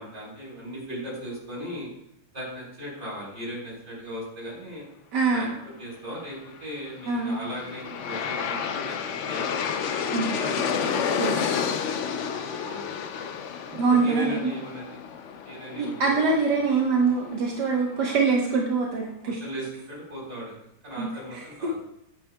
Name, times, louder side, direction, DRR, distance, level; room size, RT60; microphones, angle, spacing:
voice 1, 0.0-1.9 2.3-4.9 5.3-5.5 5.8-9.0 9.3-9.6 10.3-11.0 12.2-13.0 13.9-15.0 15.4-16.1 17.9-18.0 19.2-20.5 20.8-21.7, equal, 40° right, -4 dB, 4.1 m, -37 dB
voice 2, 5.1-5.6 7.1-7.5 10.1-10.4 11.2-11.3 13.7-14.5 15.8-19.4 21.0-21.8, right 4 dB, 80° right, -2 dB, 1.7 m, -24 dB
Aircraft, 7.0-18.1, left 7 dB, 60° left, 0.8 m, -31 dB
15.0 x 8.7 x 2.2 m, 0.79 s
omnidirectional pair, 1.8 m